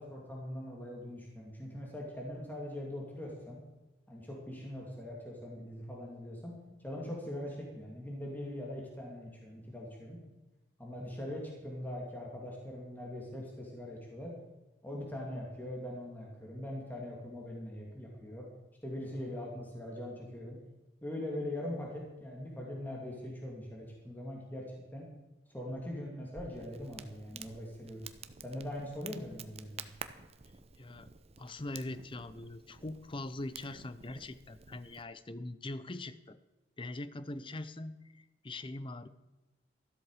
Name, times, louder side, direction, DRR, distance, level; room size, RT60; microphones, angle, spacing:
voice 1, 0.0-3.6 4.1-6.6 6.8-10.2 10.8-14.4 14.8-18.4 18.8-20.6 21.0-24.7 24.9-25.1 25.5-28.1 28.4-29.8, left 1 dB, 10° left, -2 dB, 2.4 m, -41 dB
Crackle, 26.3-35.0, right 6 dB, 35° right, 0.7 m, -50 dB
voice 2, 30.8-31.1 31.4-36.4 36.8-39.1, left 2 dB, 30° left, 14 dB, 0.6 m, -42 dB
13.5 x 12.5 x 4.9 m, 1.1 s
head